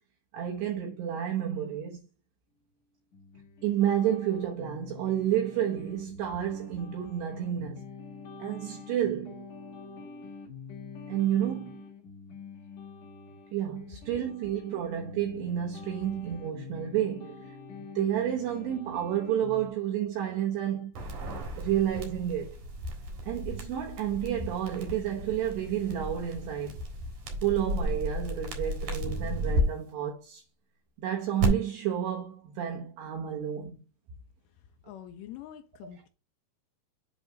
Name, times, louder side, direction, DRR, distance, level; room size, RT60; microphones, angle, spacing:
voice 1, 0.3-2.0 3.6-7.8 8.4-9.5 11.1-11.8 13.5-17.6 18.0-20.9 21.6-22.6 23.3-26.8 27.4-30.4 31.0-33.8, right 10 dB, 75° right, 2.9 m, -30 dB
sound 1, 3.1-19.7, left 5 dB, 45° left, 2.6 m, -46 dB
sound 2, 20.9-29.6 31.4-31.5, equal, 55° right, 2.5 m, -34 dB
voice 2, 34.8-36.1, left 11 dB, 85° left, 2.5 m, -45 dB
8.2 x 3.4 x 5.1 m
omnidirectional pair, 5.4 m